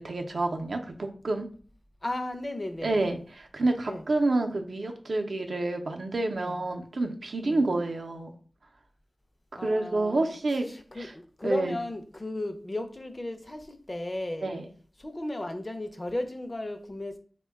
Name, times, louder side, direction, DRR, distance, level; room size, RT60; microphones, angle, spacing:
voice 1, 0.0-1.5 2.8-8.3 9.6-10.7 11.0-11.1 11.4-11.8 14.4-14.7, right 2 dB, 80° right, 0.5 m, -28 dB
voice 2, 2.0-3.1 3.9-4.0 6.3-6.6 7.4-7.6 9.5-10.4 10.6-14.5 15.0-17.1, left 1 dB, 35° left, 0.5 m, -35 dB
3.6 x 2.2 x 3.4 m
wide cardioid pair, 50°, 0 cm